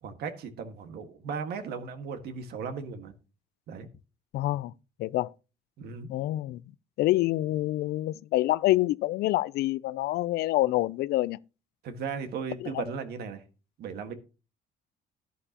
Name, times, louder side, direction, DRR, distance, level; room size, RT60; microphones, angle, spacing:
voice 1, 0.0-3.1 3.7-3.9 5.8-6.1 11.8-13.4 13.8-14.1, right 5 dB, 70° right, 1.7 m, -36 dB
voice 2, 4.3-4.7 5.0-5.3 6.1-6.6 7.0-11.4 12.6-12.8, left 16 dB, 70° left, 0.4 m, -27 dB
11.0 x 11.0 x 2.9 m
cardioid pair, 110°, 17 cm